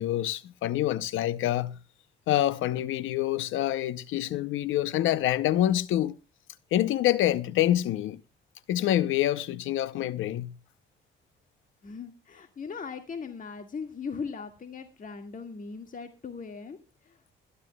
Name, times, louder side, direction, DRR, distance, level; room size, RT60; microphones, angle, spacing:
voice 1, 0.0-1.8 2.3-6.2 6.7-8.2 8.7-10.5, left 13 dB, 85° left, 0.7 m, -26 dB
voice 2, 11.8-17.3, left 5 dB, 40° left, 1.9 m, -39 dB
22.0 x 11.5 x 2.3 m
cardioid pair, 90°, 20 cm